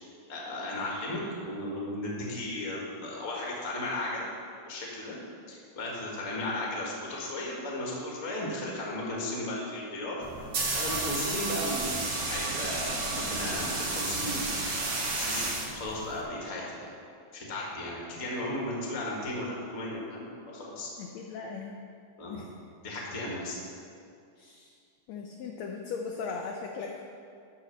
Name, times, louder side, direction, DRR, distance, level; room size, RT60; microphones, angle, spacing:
voice 1, 0.3-4.3 4.6-5.2 5.5-14.5 15.2-16.6 17.3-20.9 22.2-22.4 22.8-23.6, left 1 dB, 35° left, -3 dB, 1.5 m, -35 dB
sound 1, 10.2-16.2, right 3 dB, 50° right, 1.7 m, -32 dB
voice 2, 21.0-21.8 22.3-22.5 24.4-24.7 25.1-27.1, left 5 dB, 75° left, 1 dB, 1.6 m, -38 dB
12.5 x 4.2 x 6.5 m, 2.4 s
omnidirectional pair, 3.7 m